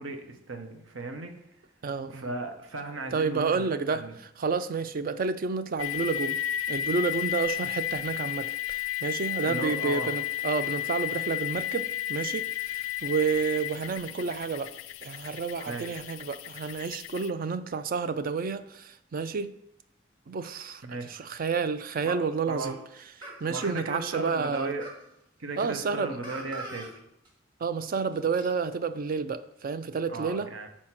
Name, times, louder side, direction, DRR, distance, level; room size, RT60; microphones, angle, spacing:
voice 1, 0.0-1.3 2.1-4.1 9.4-10.1 15.6-16.0 20.8-21.2 22.0-22.8 23.5-24.9 25.4-26.9 30.1-30.7, right 3 dB, 80° right, 6 dB, 0.9 m, -36 dB
voice 2, 1.8-2.3 3.1-4.1 4.4-6.4 6.7-14.7 15.0-19.5 20.3-22.8 23.2-24.7 25.6-26.2 27.6-30.5, right 5 dB, 45° right, 12 dB, 0.4 m, -30 dB
sound 1, 5.8-17.3, left 12 dB, 80° left, 0.3 m, -33 dB
sound 2, 22.6-22.8 23.2-24.2 24.8-25.0 26.2-26.9 27.2-27.3 28.1-28.5, right 2 dB, 25° right, 1.6 m, -42 dB
6.3 x 4.4 x 5.8 m, 0.77 s
head